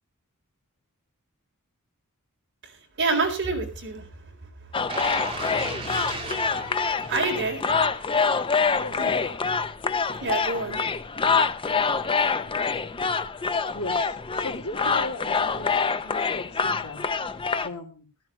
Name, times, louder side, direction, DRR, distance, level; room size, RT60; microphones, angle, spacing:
voice 1, 2.6-4.7 7.1-7.6 9.0-9.2 10.2-10.8, right 3 dB, 55° right, 1 dB, 4.1 m, -28 dB
sound 1, 4.7-17.7, left 5 dB, 25° left, 0.5 m, -26 dB
sound 2, 4.9-7.8 8.3-8.4, right 3 dB, 25° right, 2.5 m, -36 dB
voice 2, 7.1-7.6 8.8-9.4 13.7-17.0 17.6-18.1, left 2 dB, 80° left, 2 dB, 3.1 m, -38 dB
15.5 x 13.5 x 3.1 m, 0.32 s
head